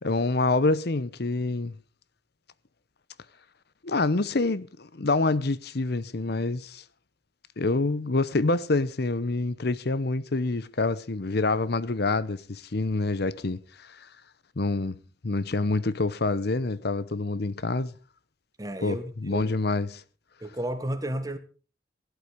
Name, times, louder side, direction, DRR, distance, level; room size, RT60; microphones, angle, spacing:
voice 1, 0.0-1.7 3.8-6.8 7.6-14.1 14.6-17.9 18.8-19.0 19.2-20.0, left 3 dB, 60° left, 0.8 m, -27 dB
voice 2, 18.6-19.6 20.4-21.4, right 1 dB, 20° right, 1.7 m, -32 dB
17.0 x 11.5 x 5.2 m
head